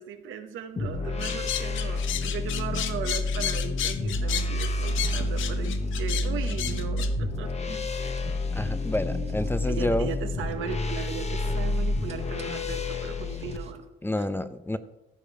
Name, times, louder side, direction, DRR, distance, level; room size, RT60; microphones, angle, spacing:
voice 1, 0.0-7.5 8.5-8.8 9.6-13.8 14.2-14.3, right 7 dB, 85° right, 7 dB, 1.1 m, -37 dB
sound 1, 0.8-13.6, left 2 dB, 35° left, 1.1 m, -29 dB
sound 2, 1.2-7.1, left 10 dB, 75° left, 0.8 m, -32 dB
Car, 4.9-13.9, right 4 dB, 30° right, 1.3 m, -47 dB
voice 2, 8.5-10.1 14.0-14.8, left 1 dB, 10° left, 12 dB, 0.5 m, -29 dB
14.5 x 5.2 x 4.9 m, 0.98 s
cardioid pair, 90°, 20 cm